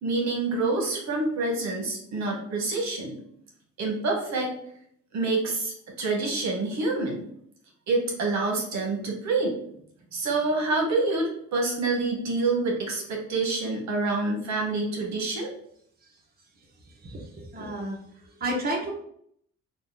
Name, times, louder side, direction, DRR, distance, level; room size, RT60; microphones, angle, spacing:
voice 1, 0.0-3.2 3.8-4.5 5.1-7.2 7.9-9.6 10.1-15.5, right 3 dB, 65° right, -1 dB, 1.1 m, -27 dB
voice 2, 17.0-18.9, right 1 dB, 30° right, -2 dB, 0.9 m, -32 dB
3.0 x 2.3 x 3.7 m, 0.68 s
cardioid pair, 90°, 30 cm